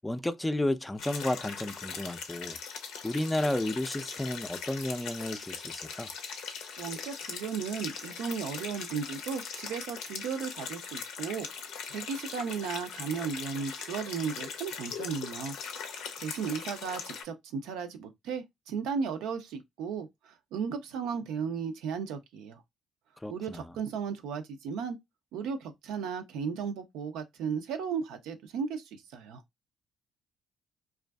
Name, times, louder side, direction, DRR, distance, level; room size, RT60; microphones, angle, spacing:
voice 1, 0.0-2.6 3.0-6.1 23.2-23.6, left 1 dB, 10° left, 0.4 m, -32 dB
sound 1, 1.0-17.2, left 6 dB, 75° left, 0.5 m, -40 dB
voice 2, 6.8-15.5 16.2-22.6 23.3-25.0 25.3-29.4, right 6 dB, 80° right, 0.4 m, -35 dB
2.5 x 2.3 x 2.2 m
hypercardioid pair, 55°, 0 cm